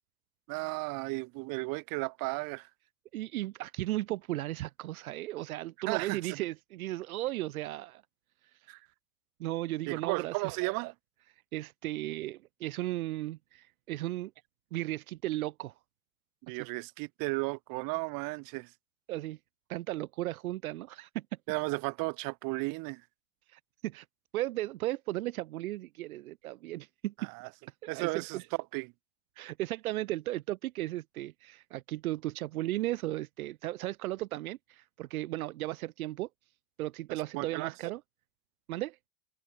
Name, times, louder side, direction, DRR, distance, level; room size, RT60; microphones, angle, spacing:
voice 1, 0.5-2.7 5.9-6.4 8.7-8.8 9.9-10.9 16.5-18.7 21.5-23.0 27.2-27.5 27.9-28.4 28.7-28.9 37.3-37.7, right 28 dB, 50° right, 1.8 m, -34 dB
voice 2, 3.1-8.0 8.5-8.7 9.4-10.6 11.5-14.3 14.7-15.7 16.6-16.7 19.1-19.4 19.7-21.2 23.5-24.0 24.3-27.3 27.8-28.4 29.4-36.3 36.8-38.0 38.7-39.0, right 16 dB, 70° right, 1.3 m, -35 dB
hypercardioid pair, 90°, 45 cm